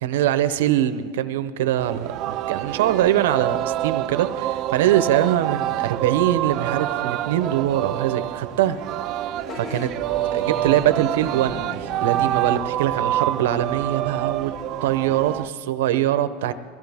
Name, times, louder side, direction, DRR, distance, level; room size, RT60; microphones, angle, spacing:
voice 1, 0.0-8.8 9.6-9.9 10.3-14.5 14.8-16.5, right 12 dB, 85° right, 12 dB, 0.8 m, -23 dB
Singing, 1.8-15.5, right 13 dB, 45° right, 0.4 m, -27 dB
Vehicle horn car horn honking / Bus, 9.4-15.5, left 5 dB, 25° left, 0.8 m, -40 dB
22.5 x 15.0 x 3.6 m, 2.2 s
supercardioid pair, 140°, 0 cm